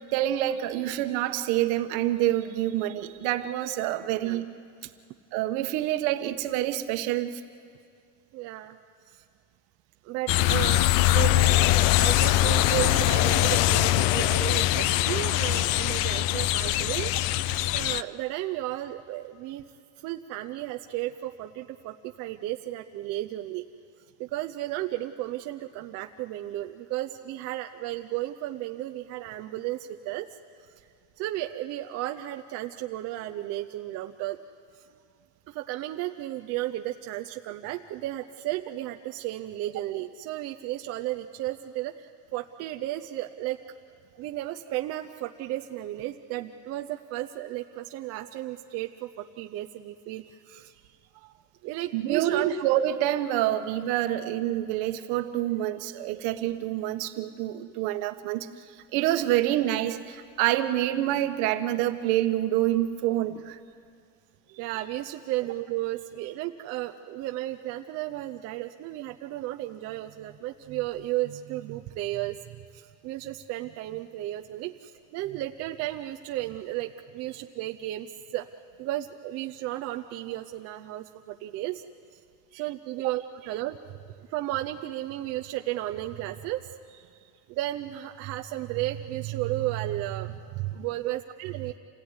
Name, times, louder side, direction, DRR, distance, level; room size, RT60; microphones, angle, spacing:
voice 1, 0.1-4.5 5.3-7.4 51.9-58.5 58.9-63.6 91.0-91.1, right 13 dB, 65° right, 8 dB, 1.3 m, -27 dB
voice 2, 8.3-8.8 9.1-9.2 10.0-17.1 17.4-19.7 20.0-23.6 24.2-30.3 31.2-34.4 35.5-43.7 44.2-50.7 51.6-52.6 54.2-54.3 64.5-72.4 72.7-78.5 78.8-81.8 82.1-82.2 82.5-83.8 84.2-86.6 87.5-91.8, right 15 dB, 40° right, 5 dB, 0.6 m, -34 dB
sound 1, 10.3-18.0, left 15 dB, 85° left, 0.6 m, -22 dB
27.5 x 17.0 x 9.6 m, 2.3 s
cardioid pair, 180°, 39 cm